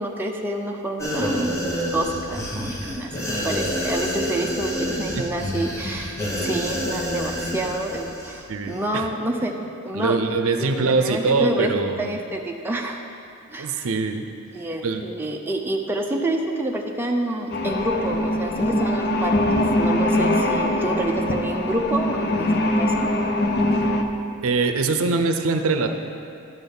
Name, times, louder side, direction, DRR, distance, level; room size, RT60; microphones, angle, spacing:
voice 1, 0.0-1.7 1.9-9.6 9.8-10.2 10.6-11.7 12.0-13.0 13.5-13.9 14.5-23.1, right 1 dB, 10° right, 0 dB, 0.5 m, -28 dB
sound 1, 1.0-8.4 8.7-8.8, equal, 15° left, 1.3 m, -28 dB
voice 2, 8.5-9.1 9.9-12.1 13.6-14.2 14.8-15.0 24.4-25.9, right 4 dB, 65° right, 6 dB, 0.6 m, -23 dB
sound 2, 17.5-24.0, left 1 dB, 50° left, 0.6 m, -22 dB
10.5 x 4.1 x 6.9 m, 2.5 s
head